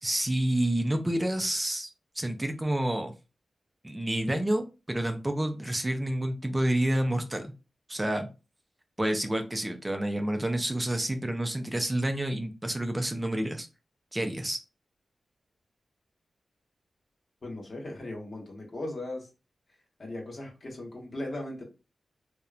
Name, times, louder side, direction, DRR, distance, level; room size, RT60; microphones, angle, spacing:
voice 1, 0.0-1.9 2.2-3.1 3.8-7.5 7.9-8.3 9.0-13.7 14.1-14.6, right 1 dB, 20° right, 6 dB, 0.4 m, -29 dB
voice 2, 17.4-19.3 20.0-21.6, left 1 dB, 60° left, 0 dB, 1.1 m, -38 dB
2.9 x 2.1 x 2.4 m, 0.29 s
cardioid pair, 55°, 0 cm